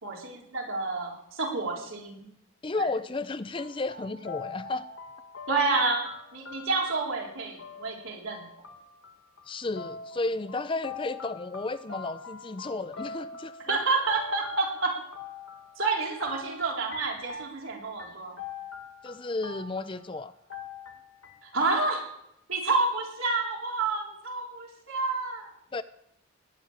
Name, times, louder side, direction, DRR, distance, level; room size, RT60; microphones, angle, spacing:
voice 1, 0.0-2.3 2.7-2.9 5.5-8.4 13.7-15.0 15.8-18.3 21.4-22.1 22.5-25.5, right 3 dB, 70° right, -1 dB, 4.0 m, -29 dB
voice 2, 2.6-4.9 9.5-13.8 19.0-20.3 25.7-25.8, left 3 dB, 25° left, 13 dB, 0.4 m, -33 dB
sound 1, 3.5-20.2 20.5-21.6, left 4 dB, 70° left, 1.9 m, -44 dB
19.5 x 6.6 x 8.8 m, 0.79 s
head